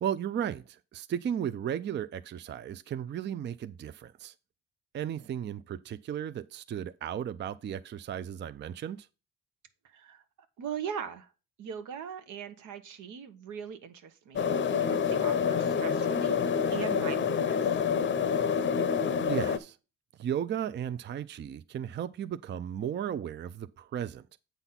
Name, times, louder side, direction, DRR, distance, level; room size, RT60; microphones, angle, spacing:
voice 1, 0.0-4.3 4.9-9.1 19.3-19.8 20.2-24.2, right 9 dB, 35° right, 0.4 m, -35 dB
voice 2, 9.8-10.2 10.6-11.3 11.6-14.5 14.8-17.8, right 8 dB, 80° right, 1.1 m, -40 dB
sound 1, 14.4-19.6, left 6 dB, 40° left, 0.6 m, -27 dB
8.0 x 4.1 x 5.7 m
cardioid pair, 90°, 30 cm